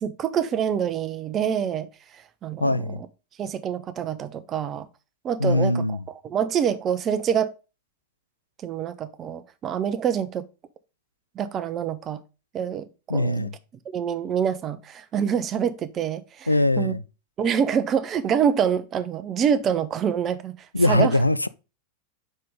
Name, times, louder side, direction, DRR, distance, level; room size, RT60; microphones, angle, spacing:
voice 1, 0.0-1.9 2.4-3.1 3.4-4.9 5.2-5.8 6.2-7.5 8.6-10.4 11.4-12.2 12.5-13.5 13.9-16.5 16.8-16.9 17.4-20.5 20.9-21.1, right 8 dB, 30° right, 0.7 m, -26 dB
voice 2, 2.6-3.0 5.4-6.0 13.1-13.5 16.5-17.0 20.7-21.5, left 1 dB, 85° left, 0.3 m, -21 dB
5.4 x 5.4 x 3.6 m
figure-of-eight pair, 90°, 0 cm